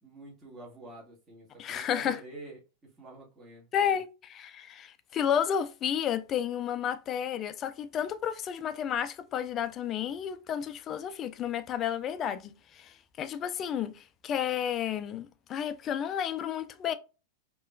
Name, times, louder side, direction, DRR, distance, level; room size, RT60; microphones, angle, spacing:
voice 1, 0.0-2.6 3.0-4.0, right 2 dB, 20° right, 1.8 m, -47 dB
voice 2, 1.6-2.2 3.7-16.9, left 9 dB, 35° left, 0.5 m, -32 dB
4.8 x 3.0 x 2.4 m
figure-of-eight pair, 90°, 0 cm